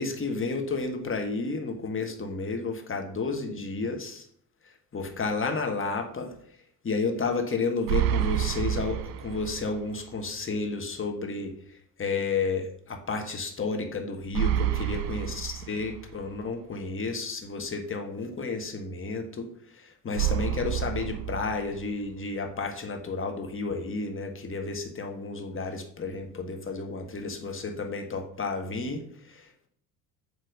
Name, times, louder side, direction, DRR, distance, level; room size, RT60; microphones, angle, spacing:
voice 1, 0.0-4.3 4.9-6.3 6.8-11.5 12.0-19.5 19.7-29.7, left 4 dB, 25° left, 4 dB, 1.3 m, -31 dB
sound 1, 7.9-9.9 10.2-10.3 14.3-16.3 20.2-22.1, right 11 dB, 70° right, 0.7 m, -29 dB
7.5 x 3.1 x 5.2 m, 0.64 s
hypercardioid pair, 70°, 48 cm